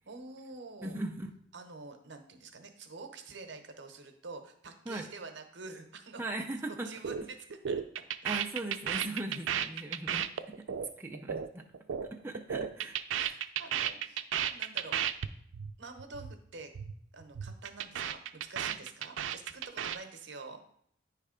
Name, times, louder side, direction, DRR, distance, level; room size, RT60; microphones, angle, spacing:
voice 1, 0.1-1.0 1.5-6.2 6.7-7.8 13.1-15.0 15.8-16.7 17.1-20.6, right 3 dB, 65° right, 6 dB, 0.9 m, -47 dB
voice 2, 0.8-1.3 4.9-5.1 6.2-6.9 8.2-10.3 10.6-10.7 11.0-11.7 12.1-13.0, right 2 dB, 10° right, 0 dB, 0.5 m, -38 dB
sound 1, 7.0-7.2 7.5-12.1 12.3-15.3 15.5-15.7 16.0-16.3 16.6-16.9 17.2-20.0, right 9 dB, 85° right, 0.4 m, -34 dB
9.6 x 3.3 x 5.0 m, 0.69 s
head